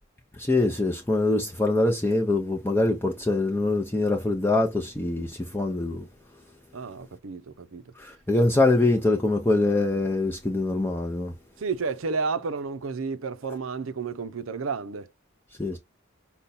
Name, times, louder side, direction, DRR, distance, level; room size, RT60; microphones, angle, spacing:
voice 1, 0.4-6.1 8.0-11.3 15.6-15.8, left 2 dB, 10° left, 0.5 m, -24 dB
voice 2, 6.7-7.8 11.6-15.1 15.7-15.8, right 4 dB, 80° right, 0.6 m, -31 dB
5.2 x 2.3 x 4.1 m
head